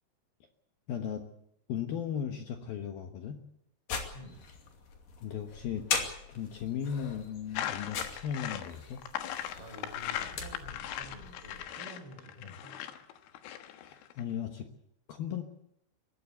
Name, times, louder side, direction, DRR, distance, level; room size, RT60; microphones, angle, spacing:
voice 1, 0.9-1.2 1.7-3.4 5.2-5.9 6.3-9.0 12.4-12.5 13.8-14.7 15.1-15.4, left 8 dB, 65° left, 5 dB, 2.5 m, -36 dB
sound 1, 3.9-11.6, left 5 dB, 50° left, 3.8 m, -40 dB
voice 2, 4.1-4.5 9.6-12.9, right 1 dB, 55° right, 3 dB, 6.7 m, -50 dB
sound 2, 7.6-14.2, left 11 dB, 90° left, 3.9 m, -39 dB
23.0 x 17.0 x 8.1 m, 0.75 s
omnidirectional pair, 5.5 m